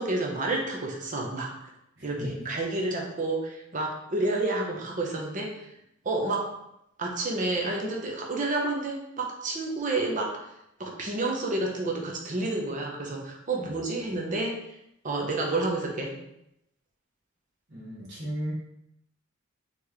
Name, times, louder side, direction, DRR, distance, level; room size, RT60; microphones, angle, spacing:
voice 1, 0.0-1.7 2.0-5.6 6.0-6.5 7.0-10.4 10.8-14.5 15.0-16.1, right 2 dB, 40° right, 0 dB, 0.8 m, -30 dB
voice 2, 2.0-2.4 13.6-13.7 17.7-18.5, equal, 55° right, -6 dB, 1.3 m, -35 dB
4.1 x 3.0 x 3.4 m, 0.82 s
head